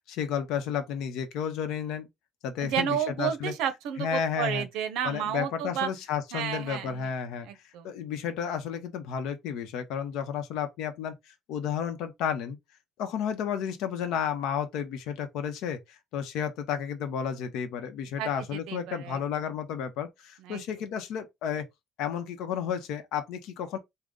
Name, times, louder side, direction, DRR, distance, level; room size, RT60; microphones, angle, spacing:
voice 1, 0.1-2.1 2.4-3.5 4.0-4.6 5.0-7.5 7.8-12.6 13.0-21.6 22.0-23.8, left 8 dB, 75° left, 0.7 m, -32 dB
voice 2, 2.6-5.9 6.3-7.1 7.4-7.9 18.2-19.2 20.4-20.6, right 9 dB, 85° right, 0.6 m, -32 dB
3.8 x 2.1 x 3.6 m
cardioid pair, 165°, 0 cm